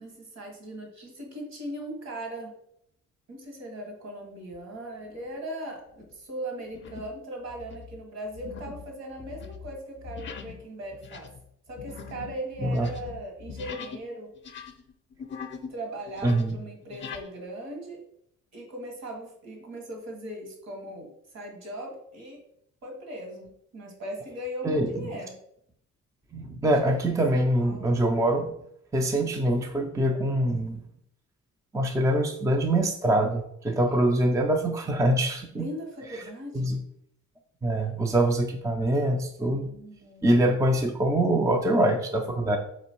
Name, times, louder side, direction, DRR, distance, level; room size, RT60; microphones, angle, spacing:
voice 1, 0.0-2.5 3.3-11.3 11.7-14.3 15.7-18.0 18.5-22.4 22.8-25.3 27.0-27.9 33.9-34.0 35.5-36.7 39.7-40.3, right 1 dB, 60° right, 1 dB, 1.7 m, -39 dB
sound 1, 5.0-5.4 5.9-6.1 6.7-7.2 7.5-14.1 14.4-15.8 16.1-17.3, left 6 dB, 40° left, 0.6 m, -42 dB
voice 2, 16.2-16.5 24.6-25.1 26.3-28.5 28.9-30.8 31.7-35.7 36.5-36.8 37.6-39.7 40.2-42.6, right 1 dB, 10° right, 3 dB, 0.4 m, -24 dB
3.9 x 3.0 x 4.5 m, 0.73 s
cardioid pair, 90°, 30 cm